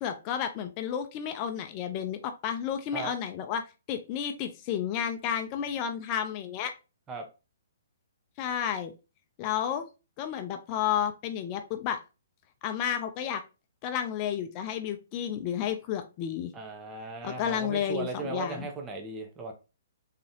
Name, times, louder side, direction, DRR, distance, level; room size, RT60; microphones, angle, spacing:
voice 1, 0.0-3.6 3.9-6.7 8.4-8.9 9.4-9.9 10.2-12.0 12.6-13.4 13.8-16.5 17.2-18.7, left 9 dB, 35° left, 7 dB, 0.6 m, -31 dB
voice 2, 16.5-19.5, right 3 dB, 20° right, 2 dB, 1.0 m, -37 dB
3.9 x 3.7 x 2.9 m, 0.29 s
figure-of-eight pair, 125°, 0 cm